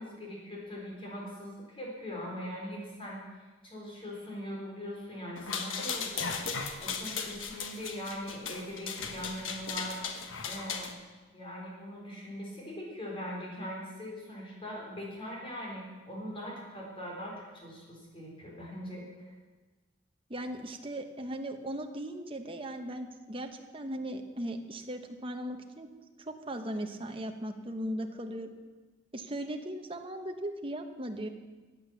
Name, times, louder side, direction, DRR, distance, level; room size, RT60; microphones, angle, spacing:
voice 1, 0.0-3.2 3.6-6.2 6.8-10.0 10.4-11.0 11.3-19.3, equal, 25° left, -2 dB, 4.0 m, -41 dB
sound 1, 5.4-10.9, left 5 dB, 80° left, 1.3 m, -37 dB
voice 2, 20.3-25.9 26.2-28.5 29.1-31.3, right 1 dB, 25° right, 5 dB, 1.1 m, -38 dB
15.0 x 8.8 x 7.2 m, 1.3 s
head